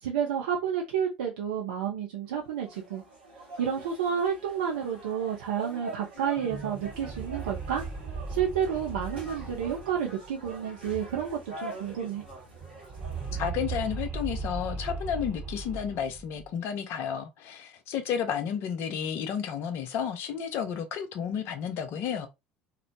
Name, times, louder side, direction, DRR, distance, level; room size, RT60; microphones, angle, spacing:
voice 1, 0.0-3.0 3.6-7.8 8.3-12.2, right 8 dB, 70° right, 0.4 m, -30 dB
sound 1, 2.3-13.5, right 2 dB, 85° right, 1.0 m, -45 dB
sound 2, 6.4-11.5 11.8-11.9 12.2-16.5, right 4 dB, 30° right, 0.8 m, -38 dB
voice 2, 13.4-22.3, left 8 dB, 50° left, 0.6 m, -32 dB
2.9 x 2.0 x 2.6 m
figure-of-eight pair, 65°, 5 cm